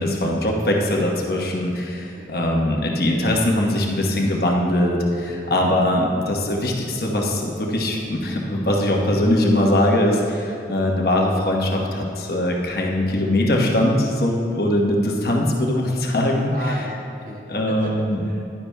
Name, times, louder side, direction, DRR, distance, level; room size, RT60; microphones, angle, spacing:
voice 1, 0.0-16.5 17.5-18.2, left 1 dB, 55° left, -1 dB, 1.1 m, -21 dB
voice 2, 2.0-2.3 5.2-5.5 16.5-18.4, equal, 45° right, -3 dB, 1.4 m, -36 dB
11.5 x 10.0 x 2.2 m, 2.7 s
head